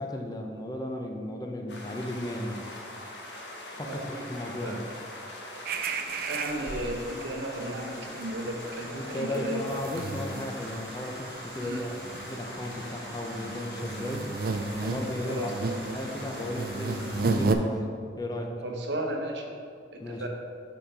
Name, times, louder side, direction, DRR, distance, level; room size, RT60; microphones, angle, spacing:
voice 1, 0.0-2.7 3.8-4.9 8.9-14.3 14.8-15.5 15.9-18.6 20.0-20.3, left 1 dB, 20° left, 2 dB, 0.5 m, -35 dB
sound 1, 1.7-17.4, left 1 dB, 75° left, 1.0 m, -42 dB
sound 2, 5.7-7.2 7.6-7.8 8.1-17.5, right 3 dB, 55° right, 0.4 m, -33 dB
voice 2, 6.3-9.8 11.6-11.8 15.2-15.8 18.6-19.5 19.9-20.3, right 1 dB, 75° right, 2 dB, 0.8 m, -34 dB
6.9 x 4.1 x 4.6 m, 2.2 s
head